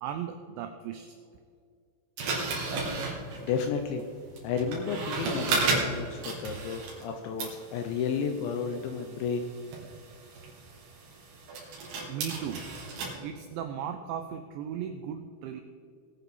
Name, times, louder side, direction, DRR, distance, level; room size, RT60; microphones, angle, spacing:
voice 1, 0.0-1.2 12.1-12.7 13.2-15.6, right 8 dB, 85° right, 7 dB, 2.6 m, -36 dB
sound 1, 2.2-7.1 7.4-13.1, right 3 dB, 65° right, 4.6 m, -34 dB
voice 2, 3.4-4.1 4.4-9.5, left 6 dB, 80° left, 5 dB, 2.7 m, -32 dB
20.5 x 8.7 x 4.2 m, 2.3 s
omnidirectional pair, 6.0 m